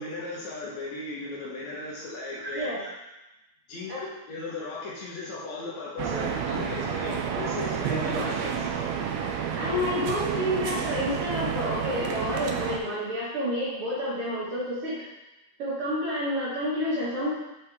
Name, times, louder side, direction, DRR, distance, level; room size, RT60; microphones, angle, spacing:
voice 1, 0.0-2.7 3.7-8.7, left 2 dB, 65° left, -5 dB, 2.2 m, -36 dB
voice 2, 2.4-2.8 3.9-4.0 7.9-8.3 9.5-15.0 15.6-17.4, left 1 dB, 50° right, -8 dB, 2.1 m, -29 dB
sound 1, 6.0-12.8, right 7 dB, 85° right, 1.4 m, -30 dB
7.6 x 4.7 x 3.4 m, 0.99 s
omnidirectional pair, 3.7 m